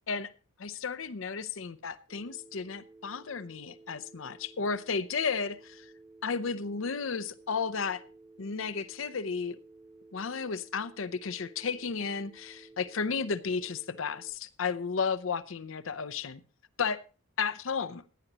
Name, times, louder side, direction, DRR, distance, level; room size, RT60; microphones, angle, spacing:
voice 1, 0.6-5.9 6.2-8.0 8.4-9.6 10.1-16.4 16.8-17.0 17.4-18.0, left 5 dB, 75° left, 0.7 m, -33 dB
Telephone, 2.1-14.3, right 3 dB, 50° right, 4.2 m, -55 dB
16.0 x 10.0 x 2.9 m
head